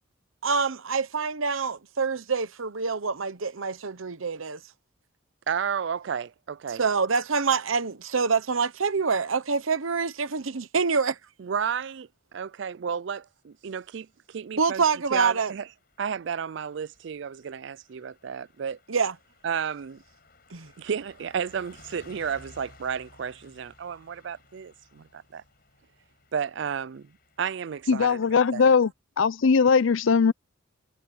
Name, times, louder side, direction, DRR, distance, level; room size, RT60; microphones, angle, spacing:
voice 1, 0.4-4.6 6.8-11.2 14.6-15.5 18.9-19.1 20.5-20.7, right 5 dB, 85° right, 1.0 m, -26 dB
voice 2, 5.5-6.8 11.4-14.8 15.1-15.7 16.0-18.8 19.4-20.0 20.8-25.4 26.3-27.1 27.4-28.7, right 7 dB, 60° right, 0.4 m, -32 dB
Car passing by / Truck, 15.0-27.9, left 3 dB, 50° left, 4.9 m, -57 dB
voice 3, 27.9-28.9 29.2-30.3, left 5 dB, 75° left, 0.5 m, -20 dB
head